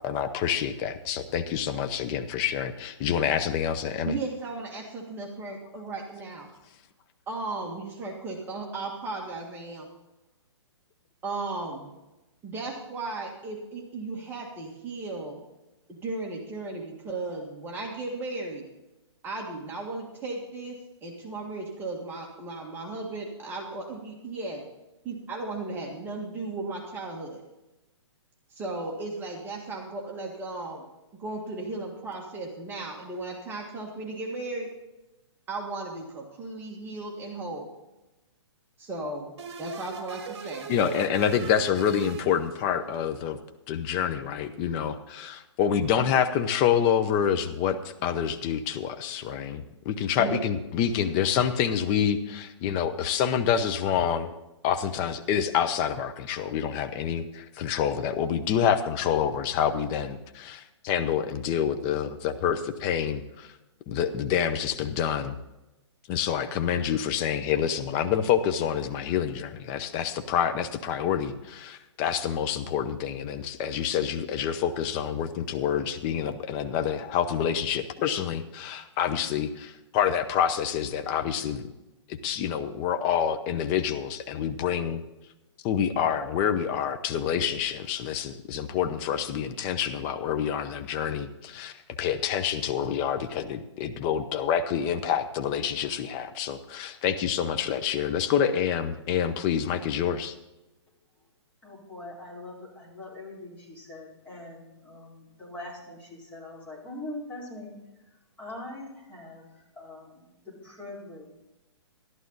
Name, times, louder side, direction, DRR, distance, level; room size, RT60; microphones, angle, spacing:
voice 1, 0.0-4.1 40.7-43.4 43.7-47.8 48.0-54.3 54.6-63.5 63.9-65.3 66.1-81.7 82.2-85.0 85.6-91.7 92.0-100.3, left 8 dB, 25° left, 8 dB, 0.7 m, -27 dB
voice 2, 4.0-6.5 7.3-9.9 11.2-11.9 12.4-15.4 15.9-18.6 19.2-24.6 25.0-27.4 28.5-30.8 31.1-34.7 35.5-37.7 38.8-39.3 39.6-40.7 50.2-50.4, right 3 dB, 15° right, -1 dB, 1.8 m, -35 dB
sound 1, 39.4-43.0, right 5 dB, 60° right, 1.4 m, -40 dB
voice 3, 101.6-107.7 108.4-109.4 109.7-111.4, left 2 dB, 10° left, -7 dB, 4.7 m, -42 dB
12.5 x 12.0 x 4.0 m, 1.0 s
hypercardioid pair, 150°, 15 cm